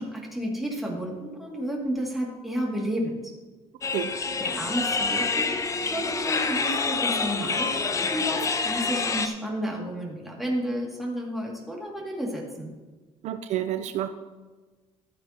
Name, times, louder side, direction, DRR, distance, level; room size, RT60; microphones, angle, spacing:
voice 1, 0.0-3.3 4.4-12.7, equal, ahead, -3 dB, 2.3 m, -31 dB
sound 1, 3.8-9.3, left 4 dB, 25° left, 0.6 m, -27 dB
voice 2, 13.2-14.1, right 11 dB, 60° right, 9 dB, 0.5 m, -29 dB
14.0 x 8.6 x 2.9 m, 1.3 s
cardioid pair, 140°, 13 cm